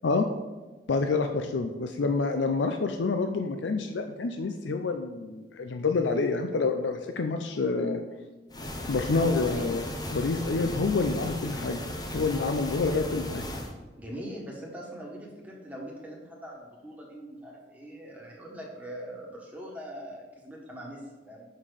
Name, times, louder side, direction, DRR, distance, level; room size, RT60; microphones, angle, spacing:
voice 1, 0.9-8.0 8.9-9.8 10.1-11.8 12.1-13.4, left 4 dB, 85° left, 6 dB, 0.5 m, -27 dB
sound 1, 8.5-13.7, left 1 dB, 20° left, 0.7 m, -36 dB
voice 2, 9.3-9.7 14.0-21.4, equal, 10° right, -3 dB, 1.5 m, -42 dB
6.5 x 5.5 x 5.0 m, 1.2 s
head